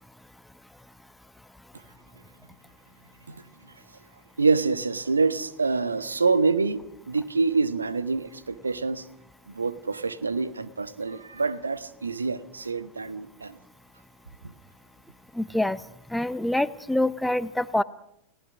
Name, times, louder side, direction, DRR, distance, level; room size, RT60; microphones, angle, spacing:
voice 1, 4.4-9.1 9.5-13.6 14.4-14.5, right 4 dB, 75° right, 13 dB, 1.3 m, -26 dB
voice 2, 15.4-15.8 16.1-17.8, left 1 dB, 5° left, 16 dB, 0.8 m, -25 dB
30.0 x 18.5 x 6.1 m, 0.76 s
figure-of-eight pair, 90°, 0 cm